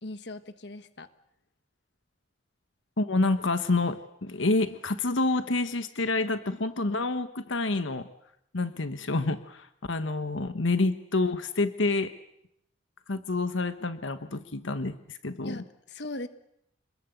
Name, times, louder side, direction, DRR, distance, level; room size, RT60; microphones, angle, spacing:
voice 1, 0.0-1.1 15.4-16.3, left 2 dB, 65° left, 10 dB, 1.4 m, -39 dB
voice 2, 3.0-8.1 8.5-12.1 13.1-15.6, left 2 dB, 85° left, 10 dB, 1.2 m, -28 dB
27.0 x 21.0 x 8.1 m, 0.76 s
head